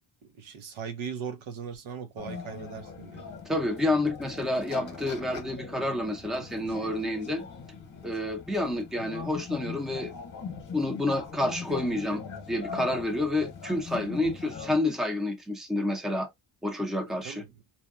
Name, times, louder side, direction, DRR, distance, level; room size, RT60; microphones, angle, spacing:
voice 1, 0.2-3.2 17.2-17.5, right 6 dB, 75° right, 0.9 m, -39 dB
sound 1, 2.2-14.8, left 5 dB, 40° left, 0.9 m, -41 dB
voice 2, 3.5-7.5 8.0-10.1 10.7-12.2 12.5-16.3 16.6-17.4, left 1 dB, ahead, 0.5 m, -29 dB
2.7 x 2.2 x 3.5 m
wide cardioid pair, 170°, 48 cm